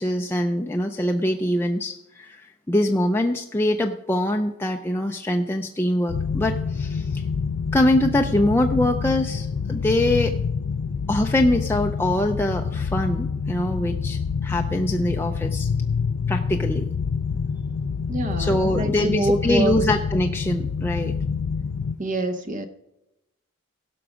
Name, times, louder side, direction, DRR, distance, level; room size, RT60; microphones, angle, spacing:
voice 1, 0.0-7.2 7.7-10.3 11.1-15.7 16.3-16.9 18.4-21.1, left 1 dB, 10° left, 3 dB, 0.4 m, -23 dB
sound 1, 6.1-21.9, left 5 dB, 75° left, 0.4 m, -27 dB
voice 2, 18.1-19.7 22.0-22.7, right 1 dB, 35° right, 6 dB, 0.7 m, -25 dB
16.5 x 6.1 x 5.0 m, 0.91 s
head